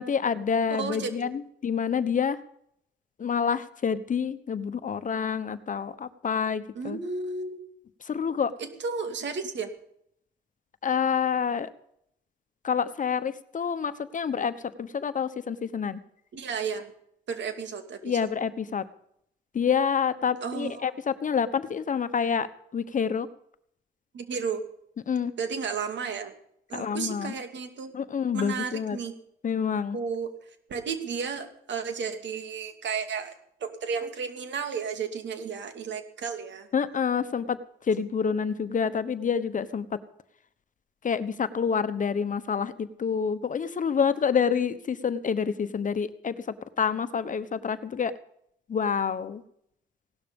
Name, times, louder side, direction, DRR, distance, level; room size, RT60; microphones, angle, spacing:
voice 1, 0.0-2.4 3.2-7.0 8.0-8.5 10.8-11.7 12.6-16.0 18.0-18.9 19.5-22.5 22.7-23.3 25.1-25.3 26.7-27.3 27.9-29.0 29.4-30.0 36.7-40.0 41.0-48.2 48.7-49.4, left 6 dB, 40° left, 12 dB, 1.1 m, -28 dB
voice 2, 0.7-1.4 6.7-7.6 8.6-9.7 16.3-16.9 17.3-18.3 20.4-20.9 24.1-24.6 25.4-26.3 26.7-27.9 28.3-29.1 29.9-30.3 30.7-33.3 33.6-36.7, right 5 dB, 65° right, 7 dB, 2.5 m, -33 dB
17.5 x 12.0 x 5.4 m, 0.71 s
cardioid pair, 90°, 20 cm